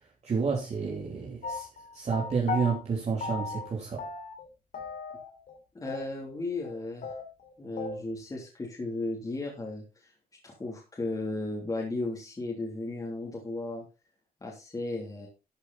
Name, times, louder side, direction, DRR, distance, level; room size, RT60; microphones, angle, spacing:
voice 1, 0.2-1.7 1.9-4.0, right 5 dB, 45° right, 3.3 m, -30 dB
sound 1, 1.4-2.8 3.2-3.7 4.0-4.5 4.7-5.6 5.9-6.0 6.3-6.4 6.6-6.7 7.0-8.0, left 4 dB, 60° left, 3.4 m, -36 dB
voice 2, 5.7-7.1 7.6-10.1 10.4-13.8 14.4-15.3, left 2 dB, 20° left, 3.3 m, -35 dB
13.0 x 8.0 x 4.3 m
wide cardioid pair, 155°, 16 cm